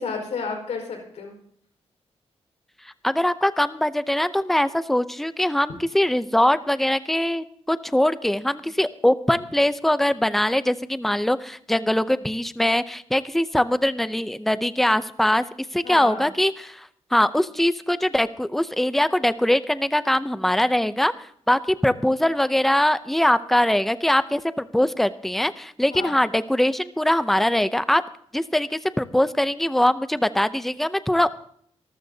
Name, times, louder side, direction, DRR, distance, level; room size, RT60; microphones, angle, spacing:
voice 1, 0.0-1.3 15.8-16.3 25.9-26.2, left 5 dB, 85° left, 2 dB, 4.7 m, -31 dB
voice 2, 3.0-15.4 15.7-21.1 21.5-24.4 24.7-28.0 28.3-31.3, left 1 dB, ahead, 13 dB, 0.5 m, -22 dB
26.0 x 13.0 x 2.7 m, 0.63 s
wide cardioid pair, 160°, 11 cm